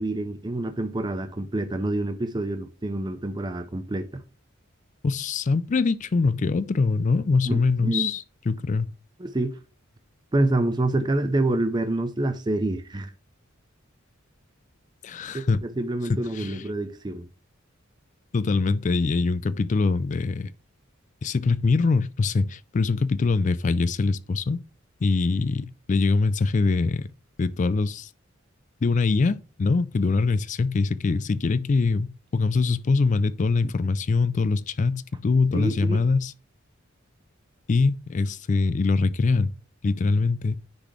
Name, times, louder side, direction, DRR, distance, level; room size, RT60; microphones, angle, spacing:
voice 1, 0.0-4.2 7.5-8.1 9.2-9.6 10.3-13.1 15.3-17.3 33.6-33.7 35.5-36.0, right 2 dB, 20° right, 0.5 m, -27 dB
voice 2, 5.0-8.9 15.0-15.6 16.3-16.6 18.3-20.5 21.2-24.6 25.0-27.1 27.4-28.1 28.8-36.3 37.7-39.5 39.8-40.6, left 4 dB, 35° left, 0.3 m, -23 dB
9.9 x 4.0 x 3.1 m
head